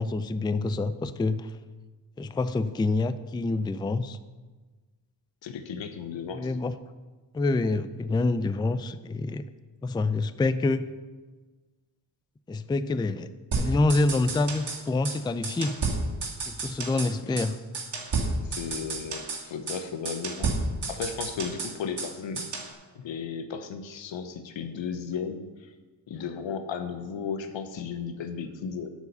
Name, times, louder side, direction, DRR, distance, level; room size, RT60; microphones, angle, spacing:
voice 1, 0.0-1.6 2.2-4.2 6.3-6.7 7.3-9.4 9.8-10.9 12.5-13.3 13.6-15.8 16.5-17.6, left 3 dB, 10° left, 12 dB, 0.4 m, -27 dB
voice 2, 5.4-6.5 18.4-20.5 20.9-22.4 22.9-25.7 26.1-28.9, left 6 dB, 75° left, 8 dB, 1.0 m, -35 dB
sound 1, 13.5-14.8 15.1-15.2 15.4-17.1 17.4-17.5 17.7-19.4 19.7-19.8 20.1-22.1 22.4-22.7, right 3 dB, 60° right, 2.1 m, -31 dB
9.5 x 4.8 x 6.7 m, 1.3 s
cardioid pair, 55°, 45 cm